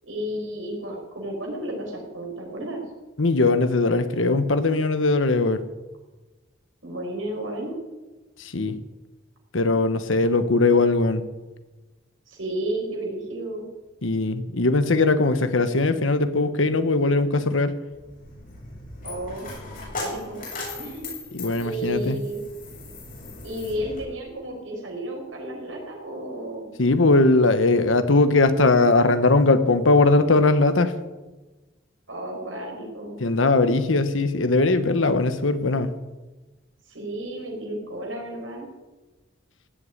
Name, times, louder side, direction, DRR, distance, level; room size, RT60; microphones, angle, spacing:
voice 1, 0.0-2.8 6.8-7.8 12.3-13.7 19.0-19.5 20.0-20.4 20.8-21.1 21.6-22.4 23.4-26.7 32.1-33.2 36.9-38.7, right 1 dB, 90° right, 0 dB, 5.9 m, -32 dB
voice 2, 3.2-5.6 8.4-8.8 9.5-11.2 14.0-17.7 21.3-22.2 26.8-30.9 33.2-35.9, left 3 dB, 85° left, 11 dB, 1.1 m, -20 dB
Coin (dropping), 17.9-24.0, left 3 dB, 45° left, 7.8 m, -38 dB
17.5 x 8.5 x 9.7 m, 1.2 s
head